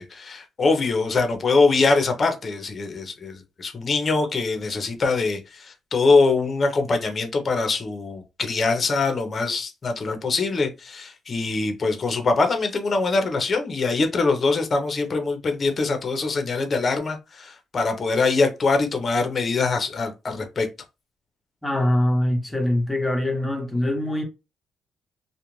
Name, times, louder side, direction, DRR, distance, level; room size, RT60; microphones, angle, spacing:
voice 1, 0.0-20.7, left 3 dB, 40° left, 0.7 m, -23 dB
voice 2, 21.6-24.2, left 1 dB, 10° left, 0.9 m, -23 dB
2.4 x 2.2 x 3.1 m
cardioid pair, 90°, 0 cm